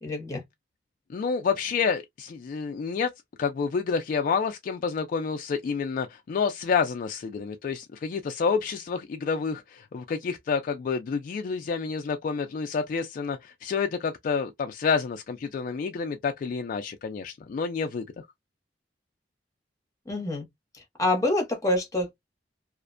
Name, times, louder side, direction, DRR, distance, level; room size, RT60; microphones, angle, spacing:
voice 1, 0.0-0.4 20.1-20.5 21.0-22.2, left 1 dB, 20° left, 0.8 m, -26 dB
voice 2, 1.1-3.1 3.4-18.3, left 5 dB, 50° left, 0.3 m, -29 dB
2.4 x 2.1 x 2.4 m
head